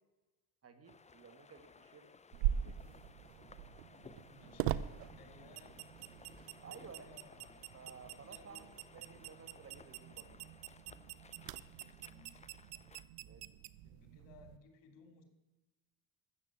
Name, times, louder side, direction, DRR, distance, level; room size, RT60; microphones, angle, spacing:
voice 1, 0.6-2.1 2.6-3.0 6.6-7.1 7.7-8.7 8.9-10.5 13.2-13.5, right 5 dB, 35° right, 8 dB, 1.8 m, -55 dB
sound 1, 0.8-13.1, left 5 dB, 15° left, 0.6 m, -60 dB
sound 2, 2.3-14.6, right 12 dB, 85° right, 0.7 m, -43 dB
voice 2, 3.7-5.8 6.6-7.6 8.2-8.7 11.7-12.4 13.8-15.2, left 5 dB, 80° left, 5 dB, 2.9 m, -62 dB
14.0 x 7.3 x 8.6 m, 1.1 s
cardioid pair, 105°, 43 cm